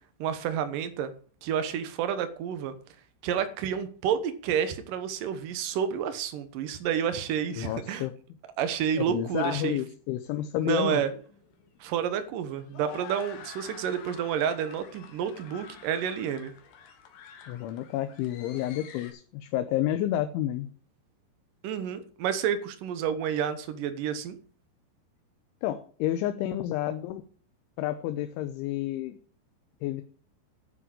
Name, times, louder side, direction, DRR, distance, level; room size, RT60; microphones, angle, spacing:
voice 1, 0.2-1.1 1.4-2.7 3.2-8.1 8.6-9.8 10.6-11.1 11.8-16.5 21.6-24.4, right 8 dB, 70° right, 9 dB, 2.1 m, -30 dB
voice 2, 7.6-8.1 8.9-11.0 17.5-20.7 25.6-27.2 27.8-29.2 29.8-30.0, left 12 dB, 90° left, 9 dB, 3.2 m, -30 dB
sound 1, 11.1-19.1, left 7 dB, 65° left, 3.3 m, -48 dB
9.9 x 6.9 x 8.7 m, 0.44 s
omnidirectional pair, 5.3 m